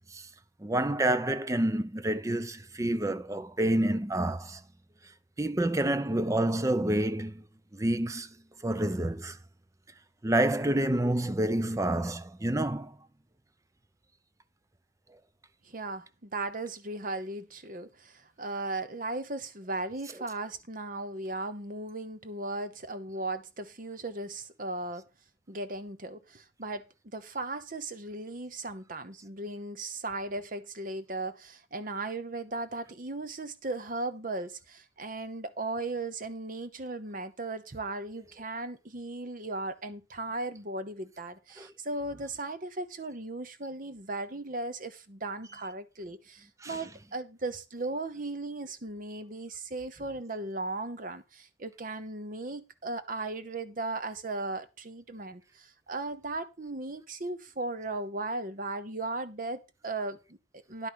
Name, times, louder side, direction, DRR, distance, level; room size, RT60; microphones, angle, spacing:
voice 1, 0.6-4.6 5.4-7.4 7.7-8.3 8.6-9.4 10.2-13.0 41.6-41.7 46.6-46.8, right 1 dB, 15° right, 0.5 m, -28 dB
voice 2, 15.6-25.0 25.5-26.8 27.1-60.9, right 2 dB, 45° right, 1.0 m, -37 dB
11.0 x 5.3 x 6.3 m
head